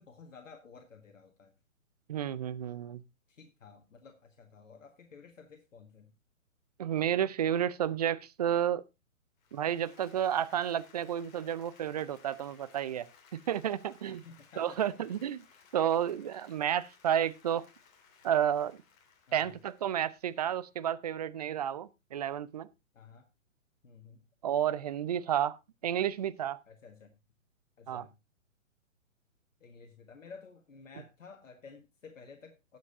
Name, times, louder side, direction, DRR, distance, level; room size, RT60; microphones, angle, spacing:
voice 1, 0.0-1.5 3.3-6.1 14.1-15.1 19.3-19.6 22.9-23.3 23.8-24.2 26.6-27.1 27.8-28.2 29.6-32.8, left 5 dB, 70° left, 1.7 m, -53 dB
voice 2, 2.1-3.0 6.8-8.8 9.5-14.2 14.6-15.4 15.7-17.7 18.2-18.8 19.3-22.7 24.4-25.6 25.8-26.6 27.9-28.0, right 10 dB, 30° right, 0.5 m, -31 dB
Applause, 9.4-20.7, left 6 dB, 30° left, 2.6 m, -61 dB
19.0 x 7.5 x 2.6 m
figure-of-eight pair, 130°, 40 cm